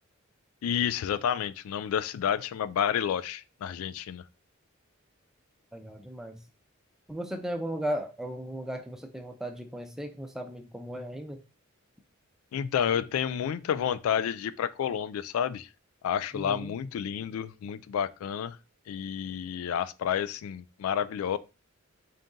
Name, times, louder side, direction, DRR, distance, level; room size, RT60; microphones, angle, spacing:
voice 1, 0.6-4.2 12.5-15.7 16.0-18.6 18.9-21.4, left 8 dB, 85° left, 0.3 m, -30 dB
voice 2, 5.7-6.4 7.1-11.4 16.3-16.8, equal, ahead, 0.5 m, -36 dB
3.9 x 2.7 x 3.6 m
head